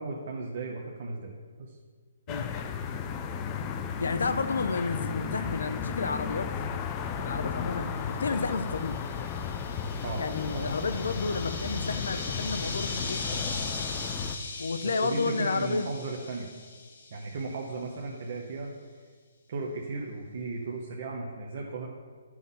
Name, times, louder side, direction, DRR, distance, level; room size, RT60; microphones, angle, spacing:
voice 1, 0.0-1.8 10.0-10.2 10.5-10.7 14.8-16.5 17.1-18.7 19.5-21.9, right 3 dB, 40° right, -2 dB, 0.9 m, -36 dB
sound 1, 2.3-14.4, left 6 dB, 15° left, 0.4 m, -34 dB
voice 2, 4.0-6.5 7.0-9.0 10.2-13.4 14.6-15.9, left 4 dB, 85° left, 10 dB, 0.7 m, -31 dB
sound 2, 7.8-17.6, left 3 dB, 60° left, 1.5 m, -40 dB
11.0 x 6.1 x 3.8 m, 1.5 s
hypercardioid pair, 175°, 0 cm